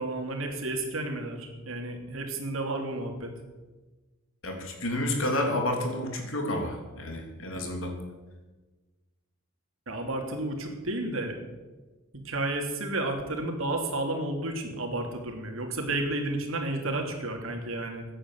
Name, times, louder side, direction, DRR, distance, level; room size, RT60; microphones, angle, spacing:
voice 1, 0.0-3.3 9.9-11.4 12.2-18.0, right 2 dB, 75° right, 3 dB, 3.0 m, -32 dB
voice 2, 4.4-7.9, left 1 dB, 70° left, 2 dB, 3.3 m, -30 dB
16.0 x 9.9 x 7.8 m, 1.2 s
head